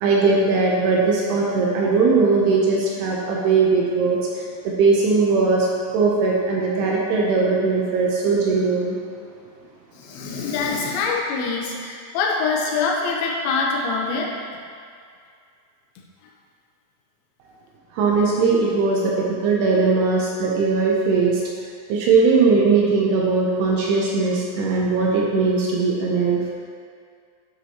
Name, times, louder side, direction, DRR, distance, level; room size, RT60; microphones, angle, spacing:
voice 1, 0.0-4.2 4.8-5.7 5.9-9.0 18.0-19.1 19.4-21.4 21.9-26.4, right 4 dB, 75° right, -3 dB, 2.5 m, -19 dB
voice 2, 10.0-14.3, left 4 dB, 75° left, -2 dB, 2.5 m, -24 dB
10.0 x 6.2 x 2.9 m, 2.2 s
omnidirectional pair, 5.1 m